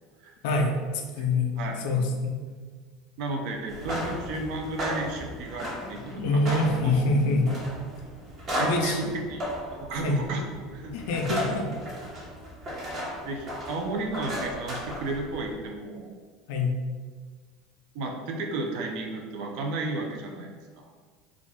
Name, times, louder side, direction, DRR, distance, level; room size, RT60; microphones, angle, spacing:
voice 1, 0.4-0.8 1.2-1.5 1.8-2.4 5.8-7.5 8.6-9.1 10.0-10.2 10.9-11.7 16.5-16.7, left 2 dB, 70° left, 2 dB, 0.4 m, -25 dB
voice 2, 3.2-6.0 6.3-7.1 8.5-9.4 9.7-10.4 10.7-11.0 11.3-11.4 13.2-16.1 17.9-20.5 20.8-20.9, right 2 dB, 65° right, 1 dB, 0.5 m, -33 dB
sound 1, 3.6-15.5, equal, 45° right, 0.9 m, -35 dB
2.4 x 2.3 x 3.3 m, 1.6 s
hypercardioid pair, 80°, 0 cm